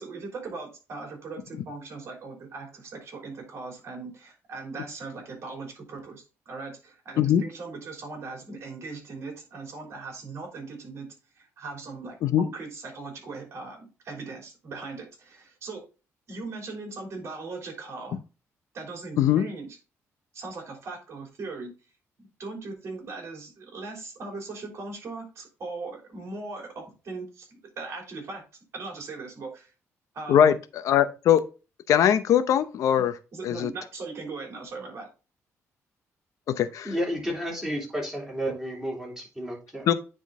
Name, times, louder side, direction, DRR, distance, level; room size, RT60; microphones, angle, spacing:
voice 1, 0.0-11.1 11.4-15.8 16.3-18.2 18.7-19.8 20.3-21.7 22.2-28.4 28.7-29.7 30.1-30.5 33.3-35.1, right 3 dB, 55° right, 3.3 m, -39 dB
voice 2, 30.3-31.4 31.9-33.1 33.4-33.7 36.6-36.9 39.9-40.0, left 10 dB, 75° left, 0.7 m, -21 dB
voice 3, 36.8-39.8, equal, 10° right, 2.8 m, -31 dB
9.6 x 3.8 x 3.7 m
cardioid pair, 125°, 5 cm